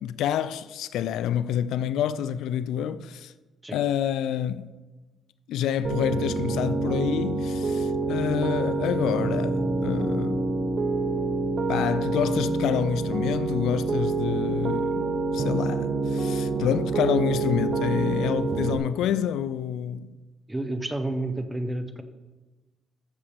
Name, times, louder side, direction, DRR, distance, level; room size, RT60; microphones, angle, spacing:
voice 1, 0.0-3.3 3.7-4.7 5.5-10.5 11.7-20.1, left 10 dB, 85° left, 0.3 m, -28 dB
Piano, 5.8-18.8, right 3 dB, 45° right, 0.8 m, -27 dB
voice 2, 20.5-22.0, right 2 dB, 10° right, 0.8 m, -30 dB
12.5 x 6.8 x 3.4 m
cardioid pair, 90°, 0 cm